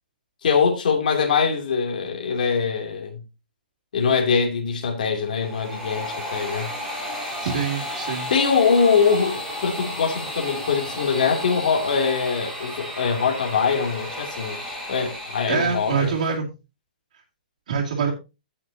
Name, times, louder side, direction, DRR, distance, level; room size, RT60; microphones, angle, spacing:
voice 1, 0.4-3.2 3.9-6.7 8.3-14.6 14.9-16.1, left 5 dB, 60° left, 2.9 m, -22 dB
sound 1, 5.2-16.3, left 1 dB, ahead, 4.0 m, -33 dB
voice 2, 7.4-8.3 15.5-16.5 17.7-18.1, right 6 dB, 55° right, 2.4 m, -25 dB
16.0 x 6.6 x 2.8 m
hypercardioid pair, 180°, 5 cm